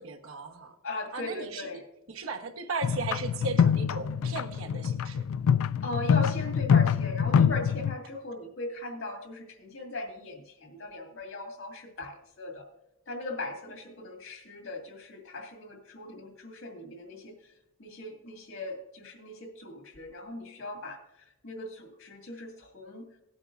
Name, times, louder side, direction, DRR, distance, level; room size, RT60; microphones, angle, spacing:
voice 1, 0.0-0.7 1.1-1.8 2.1-5.2, right 4 dB, 80° right, 5 dB, 1.1 m, -36 dB
voice 2, 0.8-1.8 5.8-12.7 13.1-17.4 17.8-21.0 21.4-23.1, left 2 dB, 70° left, 3 dB, 2.2 m, -39 dB
sound 1, 2.8-7.9, left 7 dB, 85° left, 0.3 m, -25 dB
17.5 x 8.6 x 2.5 m, 0.88 s
head